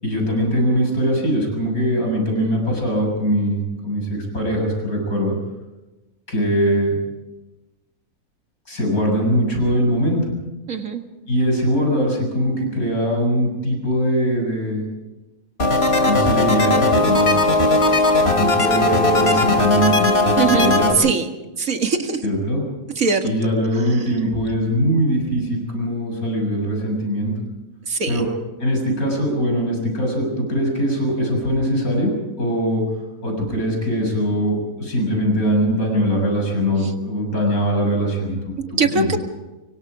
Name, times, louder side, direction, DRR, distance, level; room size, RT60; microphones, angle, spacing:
voice 1, 0.0-5.3 6.3-6.9 8.7-10.3 11.3-14.8 16.0-17.4 18.2-21.1 22.2-22.6 23.2-27.3 28.1-28.3 28.6-32.8 33.2-39.1, equal, 85° left, 1 dB, 7.6 m, -21 dB
voice 2, 10.7-11.0 20.4-21.3 21.6-22.3 23.0-23.3 23.9-24.0 27.9-28.3 36.8-36.9 38.6-39.2, right 5 dB, 70° right, 5 dB, 2.3 m, -21 dB
sound 1, 15.6-20.9, left 2 dB, 45° left, 2.7 m, -17 dB
25.5 x 23.5 x 5.0 m, 1.1 s
omnidirectional pair, 1.5 m